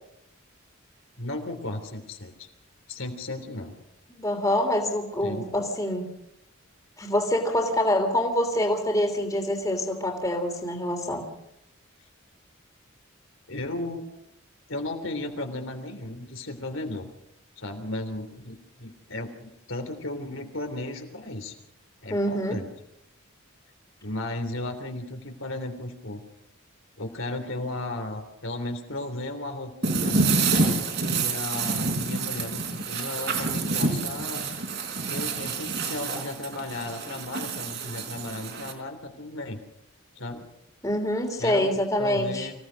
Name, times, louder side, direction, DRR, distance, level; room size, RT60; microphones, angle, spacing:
voice 1, 1.2-2.5 2.9-3.7 5.2-5.4 13.5-14.0 14.7-17.1 17.6-21.5 22.0-22.7 24.0-26.2 27.0-30.2 31.1-34.4 35.1-39.6 40.1-40.4 41.4-42.5, left 2 dB, 65° left, 5 dB, 3.2 m, -35 dB
voice 2, 4.1-6.1 7.0-11.2 22.1-22.6 40.8-42.5, left 1 dB, 15° left, 3 dB, 3.1 m, -26 dB
sound 1, 29.8-38.7, right 3 dB, 50° right, 4.0 m, -28 dB
25.5 x 16.5 x 6.4 m, 0.80 s
head